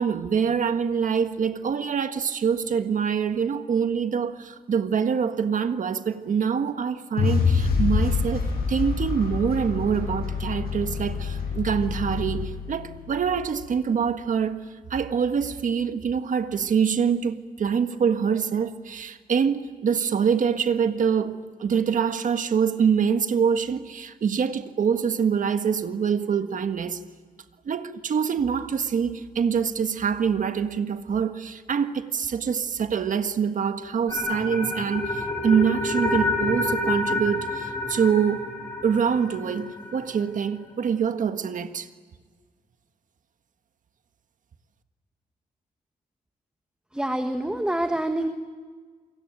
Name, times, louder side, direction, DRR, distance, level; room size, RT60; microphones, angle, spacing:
voice 1, 0.0-14.6 14.9-27.0 27.6-38.5 38.8-41.9, right 7 dB, 60° right, 1.6 m, -25 dB
sound 1, 7.2-13.3, left 5 dB, 85° left, 7.9 m, -26 dB
sound 2, 34.1-40.2, left 2 dB, 25° left, 7.5 m, -28 dB
voice 2, 46.9-48.3, right 1 dB, 5° right, 1.3 m, -26 dB
28.5 x 23.0 x 9.1 m
wide cardioid pair, 165°, 15 cm